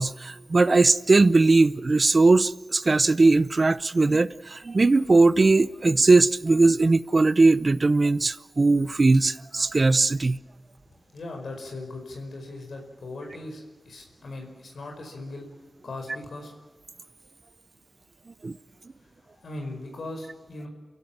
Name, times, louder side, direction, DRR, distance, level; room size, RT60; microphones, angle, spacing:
voice 1, 0.0-10.4 18.4-18.5, right 3 dB, 40° right, 0.7 m, -19 dB
voice 2, 11.1-15.5 15.8-16.5 19.0-20.7, left 2 dB, 85° left, 5.1 m, -39 dB
29.0 x 16.5 x 7.4 m
wide cardioid pair, 105°, 0 cm